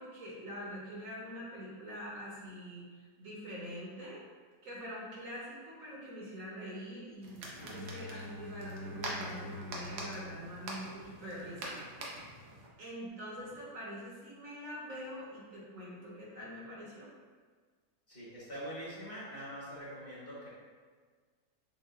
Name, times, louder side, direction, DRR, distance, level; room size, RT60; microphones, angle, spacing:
voice 1, 0.0-4.2 4.6-11.8 12.8-17.1, equal, 60° right, -6 dB, 1.2 m, -44 dB
sound 1, 7.2-12.7, right 2 dB, 85° right, 1.3 m, -44 dB
Bowed string instrument, 7.6-11.7, left 2 dB, 75° left, 1.8 m, -48 dB
voice 2, 18.1-20.5, equal, 35° left, -9 dB, 1.5 m, -44 dB
7.0 x 2.4 x 2.4 m, 1.5 s
omnidirectional pair, 1.7 m